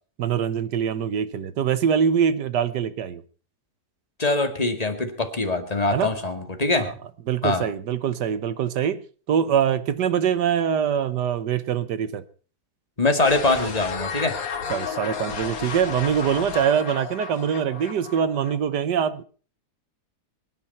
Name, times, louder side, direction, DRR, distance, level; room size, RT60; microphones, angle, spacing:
voice 1, 0.2-3.2 5.9-6.1 6.7-6.9 7.3-9.0 9.3-12.2 14.7-19.2, right 8 dB, 90° right, 1.7 m, -23 dB
voice 2, 4.2-6.9 7.4-7.7 13.0-14.4, left 2 dB, 25° left, 2.2 m, -23 dB
sound 1, 13.2-18.6, left 6 dB, 60° left, 1.9 m, -33 dB
24.5 x 10.0 x 4.3 m
omnidirectional pair, 1.8 m